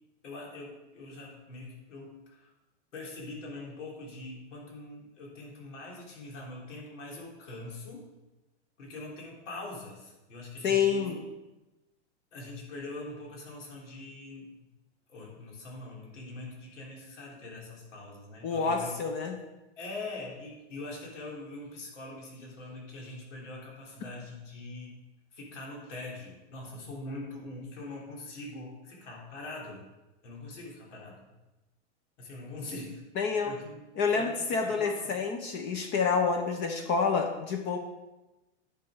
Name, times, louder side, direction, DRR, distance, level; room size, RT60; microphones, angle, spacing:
voice 1, 0.2-2.5 2.9-8.0 8.8-11.2 12.3-14.7 15.1-19.0 19.8-25.0 25.3-29.9 30.2-31.3 32.2-35.2, left 2 dB, 80° left, -2 dB, 3.4 m, -43 dB
voice 2, 10.6-11.2 18.4-19.4 33.2-33.5 34.0-37.8, left 5 dB, 30° left, 5 dB, 0.9 m, -28 dB
10.5 x 6.2 x 4.9 m, 1.0 s
supercardioid pair, 145°, 36 cm